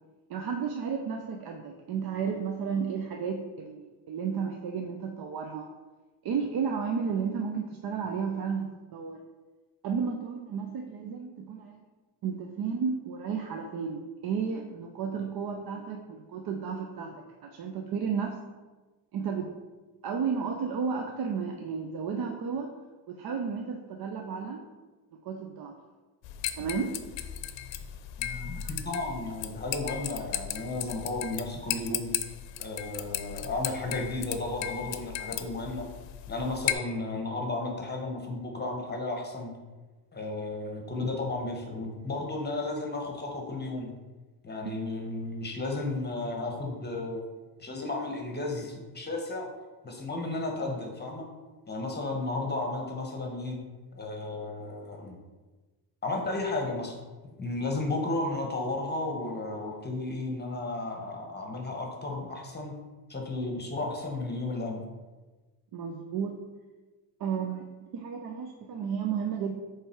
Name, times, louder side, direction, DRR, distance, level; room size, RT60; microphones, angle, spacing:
voice 1, 0.3-5.7 6.2-9.2 9.8-11.8 12.2-18.4 19.1-19.5 20.0-22.7 23.1-24.6 25.2-25.8 26.6-27.0 44.6-44.7 65.7-66.4 67.2-67.7 67.9-69.5, right 6 dB, 55° right, 3 dB, 0.7 m, -33 dB
sound 1, 26.2-36.7, left 12 dB, 75° left, 0.6 m, -36 dB
voice 2, 28.2-32.1 32.6-35.9 36.3-39.5 40.1-43.9 44.4-47.2 47.6-49.5 49.8-51.3 51.7-53.6 53.9-55.2 56.0-57.0 57.4-62.7 63.1-64.8, left 2 dB, 20° left, 1 dB, 1.2 m, -33 dB
7.8 x 3.4 x 4.5 m, 1.2 s
cardioid pair, 110°, 44 cm